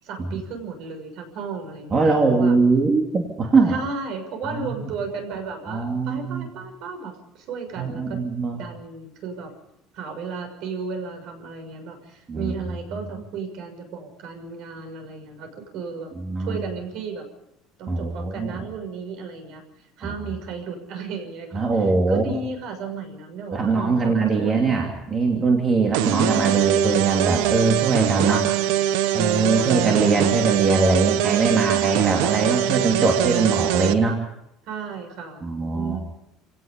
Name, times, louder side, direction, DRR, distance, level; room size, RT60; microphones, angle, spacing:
voice 1, 0.0-2.5 3.7-9.5 9.9-16.1 16.4-17.2 17.8-19.6 20.0-25.1 25.9-26.6 28.3-28.4 29.5-30.1 31.6-32.4 34.6-35.5 35.7-36.0, right 4 dB, 55° right, 5 dB, 6.5 m, -34 dB
voice 2, 1.9-3.7 4.5-4.9 5.7-6.5 7.8-8.6 12.3-12.5 16.2-16.6 17.9-18.6 21.5-22.2 23.5-28.4 29.1-34.2 35.4-36.0, right 4 dB, 20° right, 0 dB, 2.8 m, -21 dB
sound 1, 25.9-33.9, right 13 dB, 85° right, 1.1 m, -23 dB
29.0 x 18.0 x 5.3 m, 0.80 s
cardioid pair, 160°, 0 cm